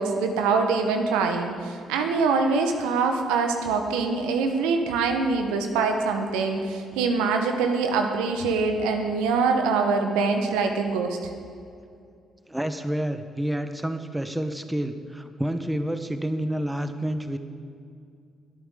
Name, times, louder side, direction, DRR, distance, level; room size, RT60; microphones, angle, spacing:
voice 1, 0.0-11.3, right 4 dB, 80° right, 5 dB, 1.1 m, -24 dB
voice 2, 12.5-17.4, right 1 dB, 10° right, 8 dB, 1.0 m, -29 dB
21.5 x 9.2 x 3.8 m, 2.4 s
hypercardioid pair, 45°, 0 cm